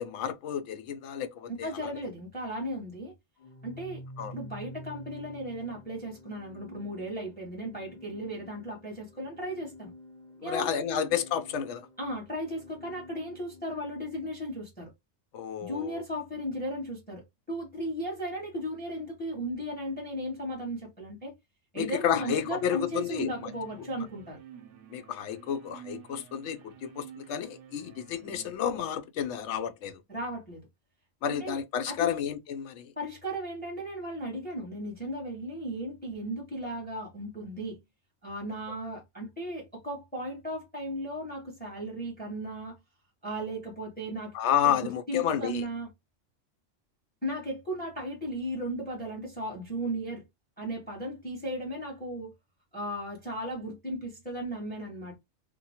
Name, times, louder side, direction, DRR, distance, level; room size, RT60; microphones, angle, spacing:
voice 1, 0.0-1.9 4.2-4.3 10.4-11.9 15.3-16.0 21.8-23.5 24.9-30.0 31.2-32.9 44.3-45.6, left 9 dB, 75° left, 0.9 m, -31 dB
voice 2, 1.5-3.1 3.6-9.9 10.4-11.1 12.0-14.9 15.6-21.3 21.7-24.4 30.1-30.6 31.3-31.6 31.9-32.2 33.0-37.8 38.2-42.8 43.2-44.3 44.6-45.9 47.2-50.2 50.6-52.3 52.7-55.1, equal, 10° left, 1.2 m, -36 dB
Organ, 3.4-14.1, left 1 dB, 45° left, 0.7 m, -49 dB
sound 1, 22.1-28.5, right 10 dB, 90° right, 0.9 m, -50 dB
2.9 x 2.2 x 2.8 m
omnidirectional pair, 1.2 m